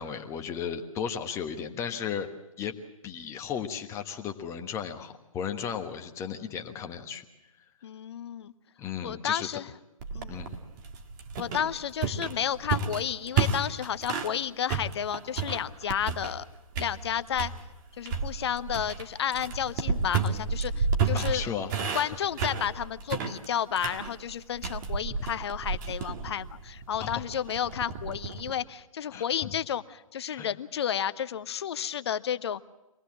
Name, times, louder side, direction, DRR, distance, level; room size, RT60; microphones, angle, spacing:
voice 1, 0.0-2.3 2.6-2.7 3.0-7.2 8.8-9.5 10.3-10.5 12.3-12.5 21.1-22.2 27.0-27.2 29.1-29.5 30.4-30.5, left 7 dB, 15° left, 5 dB, 1.4 m, -35 dB
voice 2, 7.8-8.5 9.0-9.7 10.1-10.4 11.4-16.4 16.8-17.5 18.0-21.4 21.9-32.6, left 9 dB, 50° left, 15 dB, 0.8 m, -32 dB
sound 1, 10.0-14.4 14.7-16.5 16.7-17.6 18.1-28.5, right 5 dB, 35° right, 1.9 m, -31 dB
24.5 x 18.5 x 7.5 m, 0.97 s
figure-of-eight pair, 135°, 18 cm